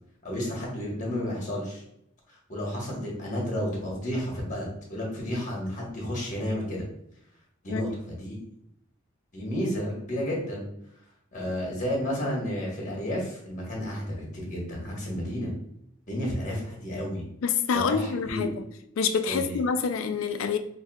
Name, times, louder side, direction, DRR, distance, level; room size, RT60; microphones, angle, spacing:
voice 1, 0.2-1.8 2.3-6.8 7.6-8.4 9.3-10.6 11.3-15.5 16.1-17.3 17.7-18.5 19.3-19.6, equal, 35° left, 1.2 m, -31 dB
voice 2, 17.4-18.5 19.0-20.6, left 6 dB, 65° left, 0.4 m, -26 dB
5.5 x 2.6 x 2.3 m
head